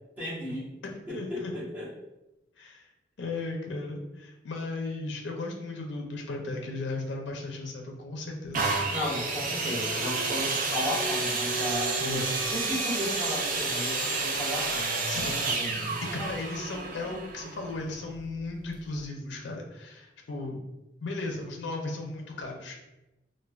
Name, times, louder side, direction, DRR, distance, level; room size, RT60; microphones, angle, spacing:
voice 1, 0.2-0.7 1.1-1.9 8.9-12.3 12.5-15.9, left 1 dB, 10° right, -11 dB, 1.0 m, -35 dB
voice 2, 0.8-1.5 2.6-2.9 3.2-8.7 12.0-12.4 15.1-20.6 21.0-22.8, left 2 dB, 75° left, 1 dB, 0.4 m, -36 dB
sound 1, 8.5-18.2 18.9-19.0, right 3 dB, 45° right, 0.4 m, -30 dB
3.2 x 2.1 x 2.3 m, 0.97 s
head